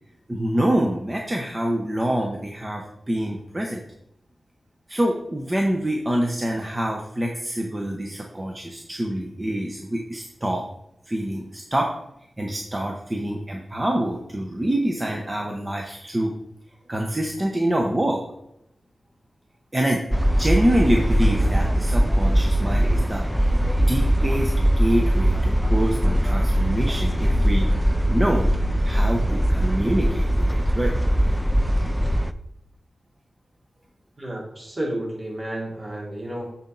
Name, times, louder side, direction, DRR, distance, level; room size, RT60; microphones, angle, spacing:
voice 1, 0.3-3.8 4.9-10.6 11.1-11.9 12.4-16.3 16.9-18.2 19.7-20.0 20.4-23.5 23.9-27.7 28.1-28.5 28.8-30.9, right 1 dB, 25° right, 1 dB, 0.9 m, -25 dB
sound 1, 20.1-32.3, equal, 5° right, 0.4 m, -21 dB
voice 2, 34.2-36.5, right 1 dB, 50° right, -3 dB, 2.8 m, -31 dB
9.8 x 4.3 x 3.9 m, 0.79 s
cardioid pair, 70°, 0 cm